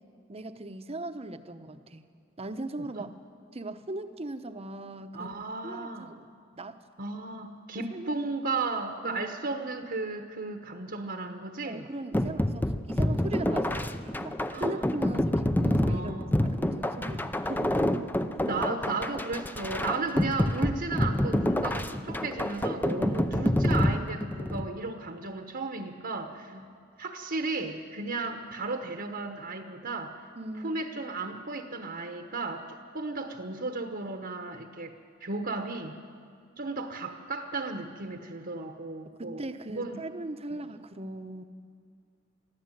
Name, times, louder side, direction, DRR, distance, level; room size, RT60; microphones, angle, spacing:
voice 1, 0.3-2.1 2.4-3.1 3.5-5.4 5.6-6.8 7.9-8.4 9.0-9.2 11.6-17.7 26.5-26.7 30.4-30.8 39.2-41.4, right 2 dB, 30° right, 9 dB, 0.9 m, -39 dB
voice 2, 5.1-6.1 7.0-11.8 14.5-14.8 15.8-16.3 18.4-26.5 27.0-30.2 30.6-34.9 35.2-36.0 36.6-39.4 39.7-40.0, right 3 dB, 55° right, 5 dB, 1.1 m, -34 dB
sound 1, 12.1-24.7, left 1 dB, 10° left, 0.6 m, -28 dB
22.5 x 14.0 x 9.1 m, 2.2 s
head